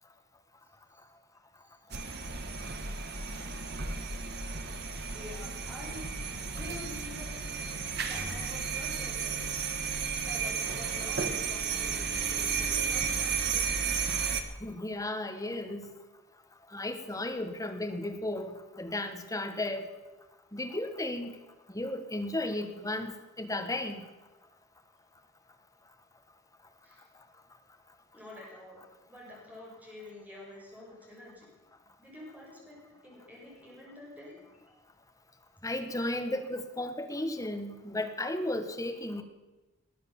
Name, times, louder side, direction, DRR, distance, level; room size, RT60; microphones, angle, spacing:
voice 1, 1.6-2.4 4.8-6.0 6.5-9.9 10.2-13.4 13.8-14.5 26.8-27.0 28.1-28.8 29.1-31.5 32.0-32.8 33.0-34.8, left 1 dB, 10° right, -4 dB, 5.9 m, -48 dB
sound 1, 1.9-14.4, right 6 dB, 55° right, 1.5 m, -33 dB
voice 2, 14.6-15.9 16.7-19.9 20.5-21.3 21.7-24.0 35.6-39.2, left 1 dB, 15° left, 6 dB, 1.4 m, -34 dB
20.0 x 9.6 x 7.0 m, 1.1 s
head